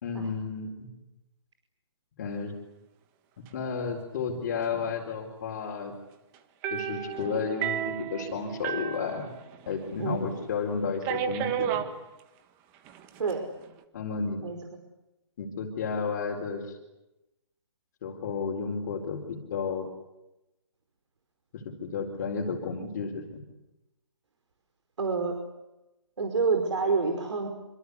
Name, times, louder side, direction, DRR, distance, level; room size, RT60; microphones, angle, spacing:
voice 1, 0.0-0.9 2.2-2.5 3.4-5.9 6.7-9.3 9.7-11.8 13.9-14.4 15.4-16.8 18.0-19.9 21.5-23.2, left 5 dB, 35° left, 0 dB, 4.2 m, -32 dB
sound 1, 6.6-9.8 10.1-10.2 11.0-11.9 12.9-13.3, right 9 dB, 15° right, 1.4 m, -32 dB
voice 2, 25.0-25.4 26.2-27.5, right 4 dB, 75° right, 5 dB, 5.2 m, -27 dB
27.0 x 26.0 x 8.4 m, 0.96 s
hypercardioid pair, 170°, 15 cm